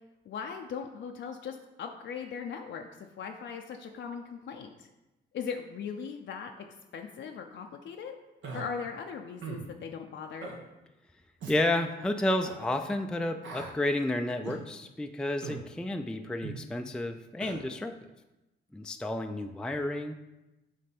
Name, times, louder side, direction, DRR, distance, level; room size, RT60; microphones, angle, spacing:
voice 1, 0.3-4.9 5.3-6.7 6.9-8.2 8.5-10.5, left 6 dB, 65° left, 3 dB, 0.5 m, -39 dB
Human voice, 8.4-8.6 9.4-9.7 10.4-10.6 11.4-11.6 12.4-12.6 13.4-13.7 14.4-14.6 15.4-15.6 16.4-16.6 17.4-17.6, right 4 dB, 70° right, 1.2 m, -39 dB
voice 2, 11.5-17.9 18.7-20.1, left 1 dB, 5° left, 6 dB, 0.4 m, -31 dB
6.3 x 3.3 x 5.9 m, 1.0 s
cardioid pair, 90°, 20 cm